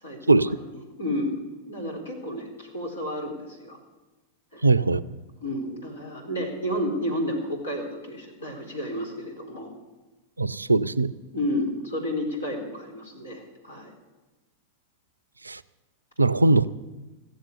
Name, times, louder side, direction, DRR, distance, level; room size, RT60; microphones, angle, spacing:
voice 1, 0.0-3.8 4.5-4.7 5.4-9.7 11.3-13.9, left 1 dB, 70° left, 4.0 m, -31 dB
voice 2, 4.6-5.0 10.4-11.1 15.5-15.6 16.2-16.7, right 3 dB, 80° right, 0.4 m, -20 dB
15.0 x 7.6 x 9.7 m
figure-of-eight pair, 90°, 0 cm